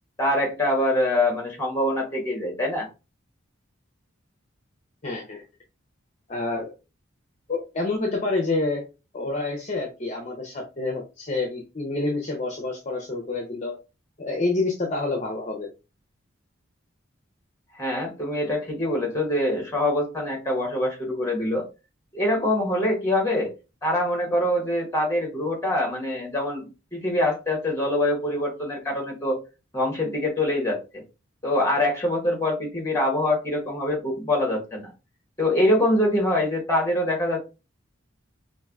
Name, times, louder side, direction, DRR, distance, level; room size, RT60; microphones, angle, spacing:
voice 1, 0.2-2.9 17.8-21.6 22.1-23.5 23.8-29.4 29.7-31.0 31.4-34.9 35.4-37.4, left 1 dB, 15° left, 0 dB, 1.1 m, -24 dB
voice 2, 5.0-5.4 6.3-6.7 7.5-8.8 9.1-13.8 14.2-15.7, left 3 dB, 35° left, 1 dB, 0.6 m, -28 dB
4.4 x 2.5 x 2.3 m, 0.29 s
head